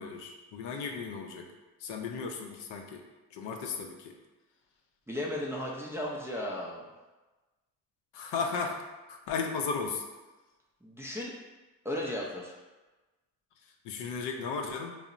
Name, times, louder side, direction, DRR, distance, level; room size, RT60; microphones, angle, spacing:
voice 1, 0.0-1.5 1.8-3.0 3.3-4.1 8.1-8.8 9.1-10.0 13.8-14.9, left 5 dB, 70° left, 3 dB, 0.5 m, -35 dB
voice 2, 5.1-6.8 10.8-11.3 11.8-12.5, left 1 dB, 5° right, -4 dB, 0.3 m, -35 dB
2.7 x 2.0 x 2.4 m, 1.2 s
supercardioid pair, 55°, 43 cm